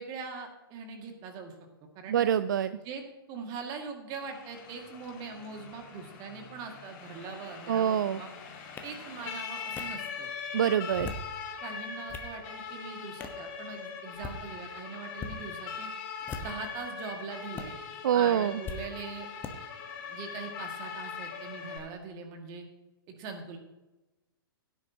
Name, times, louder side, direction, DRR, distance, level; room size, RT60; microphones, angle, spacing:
voice 1, 0.0-1.6 2.0-2.2 2.8-3.0 3.3-8.3 8.8-10.3 11.6-15.9 16.4-17.8 18.1-19.3 20.1-22.7 23.1-23.6, right 5 dB, 30° right, 4 dB, 2.1 m, -41 dB
voice 2, 2.1-2.8 7.7-8.2 10.5-11.1 18.0-18.6, right 9 dB, 55° right, 14 dB, 0.4 m, -25 dB
Siren, 4.1-21.8, left 6 dB, 40° left, 2.9 m, -41 dB
sound 1, 8.8-8.9 9.8-9.9 10.8-11.3 11.8-12.3 13.2-13.4 14.1-14.4 15.1-15.3 16.2-16.7 17.5-17.6 18.6-18.8 19.4-19.5, left 4 dB, 15° left, 1.2 m, -40 dB
17.0 x 10.0 x 2.9 m, 1.0 s
figure-of-eight pair, 110°, 12 cm